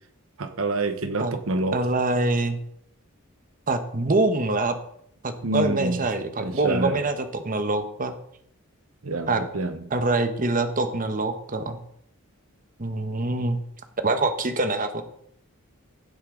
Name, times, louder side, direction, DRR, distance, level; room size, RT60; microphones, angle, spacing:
voice 1, 0.4-1.8 5.4-6.0 6.4-7.0 9.0-9.8, right 2 dB, 70° right, 9 dB, 1.1 m, -27 dB
voice 2, 1.7-2.6 3.7-4.8 5.2-8.1 9.3-9.4 9.9-11.8 12.8-13.6 14.0-15.0, right 2 dB, 40° right, 8 dB, 1.1 m, -25 dB
15.5 x 8.3 x 3.9 m, 0.70 s
head